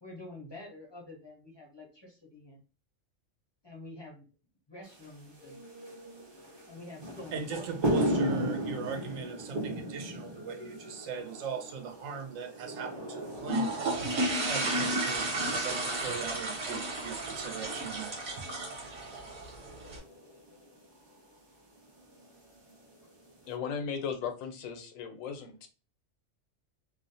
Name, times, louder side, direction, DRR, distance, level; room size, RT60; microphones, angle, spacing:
voice 1, 0.0-2.6 3.6-4.2 4.7-5.6 6.7-7.6, left 2 dB, 35° left, -2 dB, 0.4 m, -47 dB
sound 1, 4.8-23.5, right 1 dB, 35° right, 0.4 m, -38 dB
voice 2, 7.3-13.8 14.5-18.1, right 6 dB, 85° right, 6 dB, 1.0 m, -39 dB
sound 2, 13.4-20.0, right 1 dB, 60° right, 1.0 m, -33 dB
voice 3, 23.5-25.7, left 6 dB, 85° left, 6 dB, 1.0 m, -36 dB
2.5 x 2.0 x 2.6 m, 0.34 s
omnidirectional pair, 1.3 m